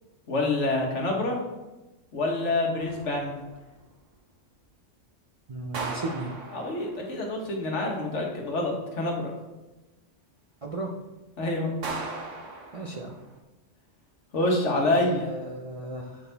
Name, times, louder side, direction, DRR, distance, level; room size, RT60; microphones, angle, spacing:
voice 1, 0.3-1.4 2.1-3.4 6.5-9.3 11.4-11.7 14.3-15.3, left 2 dB, 75° left, 0 dB, 1.6 m, -27 dB
sound 1, 2.8-3.7 5.7-7.3 11.8-13.4, right 3 dB, 90° right, 1.3 m, -38 dB
voice 2, 5.5-6.3 10.6-10.9 12.7-13.1 14.9-16.2, right 2 dB, 40° right, 0 dB, 0.5 m, -35 dB
8.3 x 3.9 x 4.0 m, 1.1 s
omnidirectional pair, 1.2 m